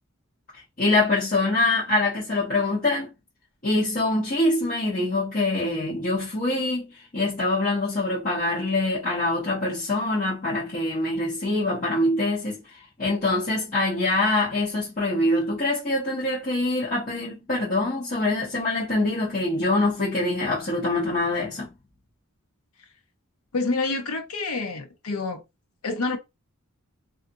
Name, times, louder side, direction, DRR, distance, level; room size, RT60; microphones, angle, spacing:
voice 1, 0.8-3.1 3.6-12.6 13.0-21.7, left 2 dB, 40° left, 0.9 m, -24 dB
voice 2, 23.5-25.4 25.8-26.2, left 3 dB, 75° left, 0.7 m, -27 dB
2.5 x 2.4 x 2.6 m
head